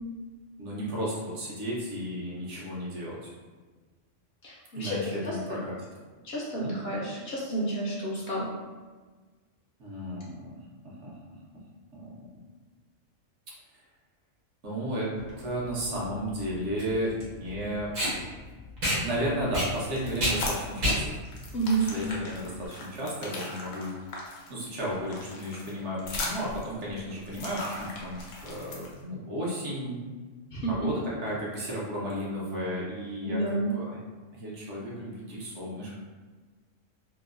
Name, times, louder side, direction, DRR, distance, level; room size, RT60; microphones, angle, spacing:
voice 1, 0.6-3.2 4.7-5.8 6.6-6.7 9.8-10.6 10.8-11.1 11.9-12.1 14.6-15.1 15.4-17.9 19.0-21.0 21.9-23.9 24.5-30.0 30.7-34.0 34.3-36.0, equal, 70° right, -5 dB, 1.0 m, -33 dB
voice 2, 4.4-5.0 5.2-5.6 6.2-8.5 21.5-21.8 30.5-30.7 33.2-33.7, right 2 dB, 60° left, -5 dB, 0.7 m, -30 dB
Packing tape duct tape, 15.2-22.7, equal, 90° right, 1.3 m, -31 dB
sound 1, 19.7-20.8 21.1-29.0, left 2 dB, 85° left, 1.0 m, -38 dB
3.0 x 2.0 x 2.3 m, 1.3 s
omnidirectional pair, 1.3 m